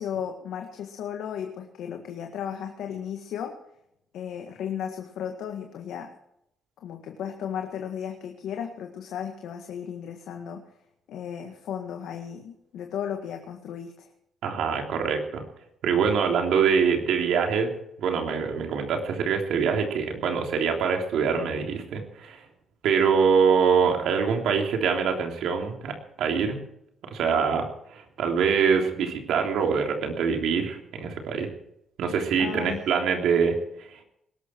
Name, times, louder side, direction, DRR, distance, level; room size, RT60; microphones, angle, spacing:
voice 1, 0.0-3.5 4.1-6.1 6.8-10.7 11.1-14.1 32.4-32.8, left 8 dB, 80° left, 4 dB, 1.7 m, -35 dB
voice 2, 14.4-15.4 15.8-17.7 18.0-22.4 22.8-26.6 27.1-31.5 32.0-34.0, right 6 dB, 80° right, 3 dB, 3.3 m, -24 dB
20.5 x 12.5 x 4.6 m, 0.78 s
cardioid pair, 90°, 0 cm